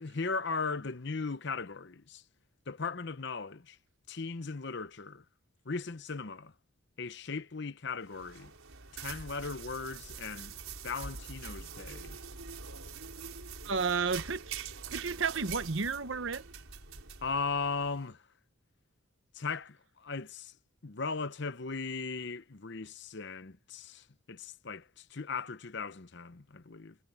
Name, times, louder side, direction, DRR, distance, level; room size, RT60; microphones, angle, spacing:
voice 1, 0.0-2.2 2.7-3.8 4.1-5.2 5.6-6.5 7.0-8.5 8.9-10.5 10.8-12.2 17.2-18.2 19.3-20.5 20.8-27.0, left 4 dB, 55° left, 0.8 m, -37 dB
sound 1, 8.0-18.0, right 6 dB, 80° right, 4.8 m, -44 dB
voice 2, 13.6-16.5, right 5 dB, 60° right, 1.1 m, -32 dB
head